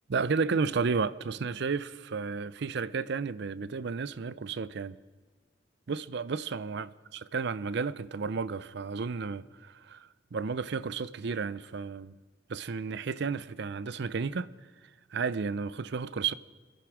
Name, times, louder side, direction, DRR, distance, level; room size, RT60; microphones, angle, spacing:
voice 1, 0.1-5.0 5.9-6.9 7.3-12.2 12.5-14.5 15.1-16.3, right 5 dB, 60° right, 0.5 m, -32 dB
24.0 x 10.5 x 5.0 m
head